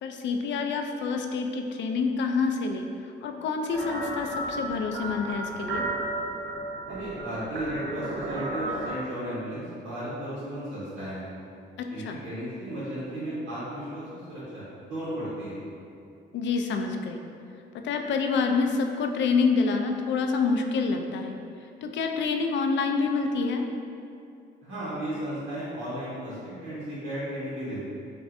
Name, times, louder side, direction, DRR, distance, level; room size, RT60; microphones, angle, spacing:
voice 1, 0.0-2.9 3.2-5.8 11.8-12.2 16.3-17.2 17.8-21.4 21.8-23.6, left 4 dB, 65° left, 4 dB, 0.4 m, -27 dB
sound 1, 3.7-8.9, right 2 dB, 60° right, 0.7 m, -33 dB
voice 2, 6.9-11.3 11.9-15.5 24.6-27.8, right 1 dB, 85° right, -10 dB, 1.2 m, -34 dB
5.2 x 2.5 x 2.6 m, 2.6 s
cardioid pair, 90°, 20 cm